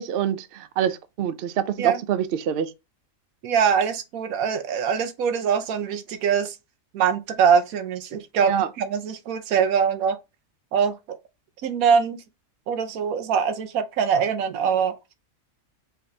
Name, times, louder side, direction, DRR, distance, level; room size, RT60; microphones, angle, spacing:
voice 1, 0.0-2.7 8.4-8.7, right 9 dB, 65° right, 0.5 m, -26 dB
voice 2, 3.4-6.6 6.9-10.2 10.7-11.2 11.6-12.2 12.7-14.9, right 7 dB, 85° right, 1.2 m, -23 dB
4.6 x 2.8 x 3.2 m
omnidirectional pair, 1.5 m